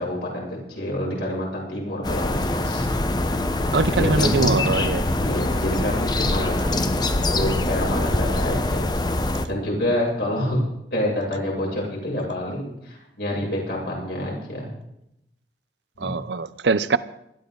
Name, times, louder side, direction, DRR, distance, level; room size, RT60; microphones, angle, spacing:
voice 1, 0.0-2.9 4.0-4.5 5.2-7.0 7.3-8.8 9.5-10.6 10.9-14.7 16.0-16.1, left 1 dB, 70° left, 7.7 m, -27 dB
sound 1, 2.0-9.5, left 2 dB, 25° left, 0.9 m, -24 dB
voice 2, 3.7-5.0 16.0-17.0, right 4 dB, 80° right, 0.7 m, -22 dB
20.0 x 13.5 x 3.9 m
head